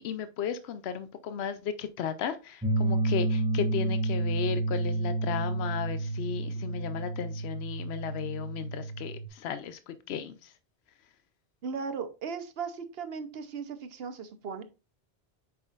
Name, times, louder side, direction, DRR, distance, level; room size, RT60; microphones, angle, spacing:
voice 1, 0.0-10.5, left 8 dB, 85° left, 0.9 m, -35 dB
sound 1, 2.6-9.3, right 2 dB, 10° right, 0.7 m, -30 dB
voice 2, 11.6-14.6, right 5 dB, 70° right, 1.1 m, -37 dB
8.0 x 5.6 x 2.4 m
omnidirectional pair, 1.0 m